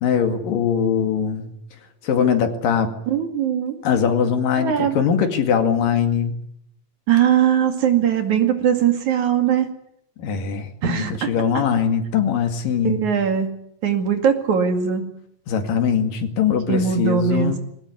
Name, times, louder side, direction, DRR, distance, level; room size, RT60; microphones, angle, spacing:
voice 1, 0.0-1.5 2.0-2.9 3.8-6.3 10.2-13.0 15.5-17.6, left 7 dB, 80° left, 7 dB, 3.9 m, -21 dB
voice 2, 3.1-3.8 4.6-5.0 7.1-9.7 10.8-11.3 12.8-13.6 13.8-15.1 16.7-17.6, right 8 dB, 60° right, 6 dB, 3.6 m, -20 dB
22.0 x 19.0 x 9.6 m, 0.73 s
omnidirectional pair, 3.9 m